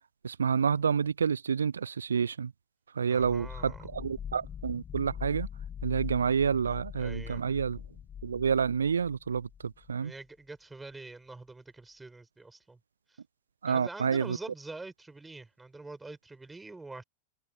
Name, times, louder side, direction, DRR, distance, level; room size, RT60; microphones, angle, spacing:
voice 1, 0.2-2.5 2.9-5.5 5.8-7.8 8.2-10.1 13.6-14.4, right 6 dB, 70° right, 0.6 m, -29 dB
voice 2, 3.1-3.9 7.0-7.4 10.0-12.8 13.1-13.2 13.6-17.0, right 3 dB, 10° right, 6.3 m, -45 dB
sound 1, 3.2-9.9, left 8 dB, 25° left, 0.6 m, -42 dB
figure-of-eight pair, 90°, 0 cm